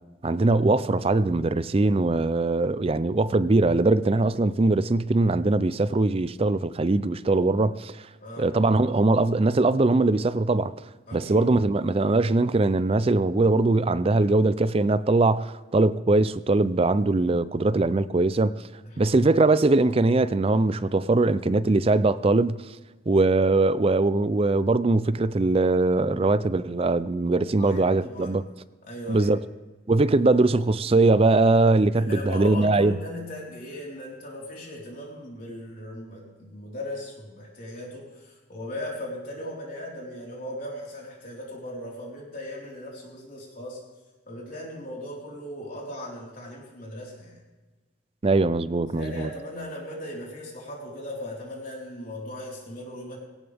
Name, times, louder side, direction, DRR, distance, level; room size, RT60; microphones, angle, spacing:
voice 1, 0.2-7.9 8.4-10.7 11.1-18.5 19.0-22.6 23.1-28.4 29.1-29.4 29.9-32.9 48.2-49.3, right 2 dB, 30° right, 0.4 m, -21 dB
voice 2, 11.1-11.4 17.8-18.0 18.8-19.2 27.4-28.4 28.8-29.3 31.9-43.8 44.3-47.4 48.9-53.2, left 1 dB, 45° left, 4.3 m, -38 dB
18.0 x 18.0 x 3.5 m
head